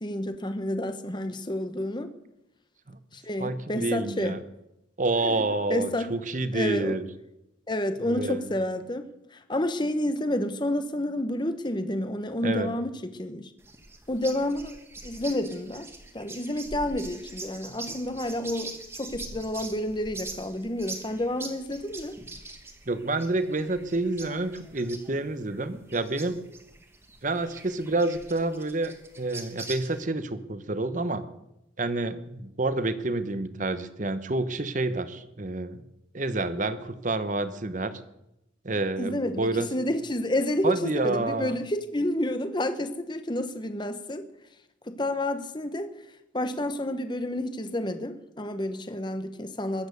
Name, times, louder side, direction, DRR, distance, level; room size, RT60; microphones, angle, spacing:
voice 1, 0.0-2.1 3.1-4.4 5.2-5.4 5.7-6.1 6.5-7.0 7.7-9.1 9.5-13.5 14.1-14.8 15.0-15.9 16.1-22.1 39.0-44.3 44.9-45.9 46.3-49.9, left 1 dB, 25° left, 1.0 m, -29 dB
voice 2, 3.4-4.4 5.0-7.1 8.1-8.5 12.4-12.7 22.9-26.4 27.2-31.2 31.8-35.8 36.1-38.0 38.6-39.7 40.6-41.6, right 2 dB, 40° right, 1.0 m, -28 dB
sound 1, 13.6-30.1, right 2 dB, 15° right, 1.5 m, -43 dB
21.5 x 8.9 x 6.7 m
head